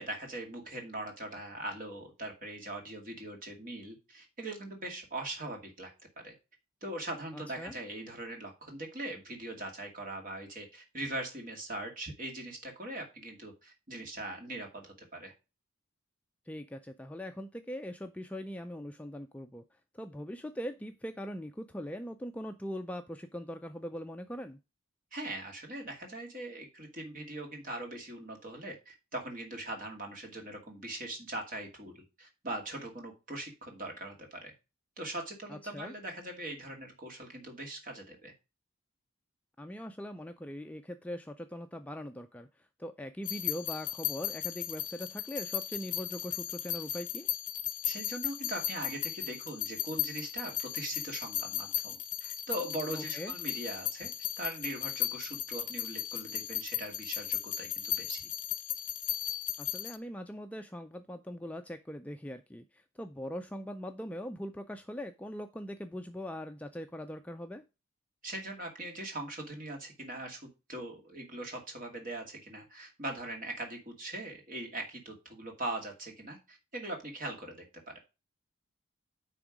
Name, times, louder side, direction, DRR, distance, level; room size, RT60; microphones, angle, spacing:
voice 1, 0.0-5.9 6.2-6.3 6.8-15.3 25.1-34.5 35.0-38.3 47.8-54.1 54.4-58.2 68.2-78.0, right 1 dB, 40° right, 2 dB, 2.2 m, -41 dB
voice 2, 7.3-7.7 16.5-19.6 19.9-24.6 35.5-35.9 39.6-47.3 52.9-53.3 59.6-67.6, equal, 5° left, 6 dB, 0.3 m, -41 dB
sound 1, 43.2-60.0, left 13 dB, 40° left, 0.9 m, -36 dB
9.8 x 3.6 x 4.9 m, 0.28 s
head